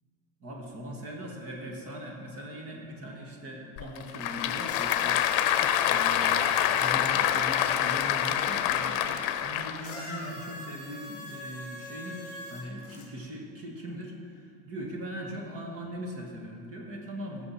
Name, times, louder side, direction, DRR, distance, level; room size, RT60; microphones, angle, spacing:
voice 1, 0.4-17.4, equal, 30° right, 0 dB, 1.5 m, -40 dB
Applause / Crowd, 3.8-9.9, left 11 dB, 85° left, 0.7 m, -26 dB
sound 1, 4.7-7.7 9.8-13.1 14.0-14.1, left 2 dB, 30° left, 2.0 m, -42 dB
15.0 x 6.9 x 4.3 m, 2.4 s
cardioid pair, 175°, 45 cm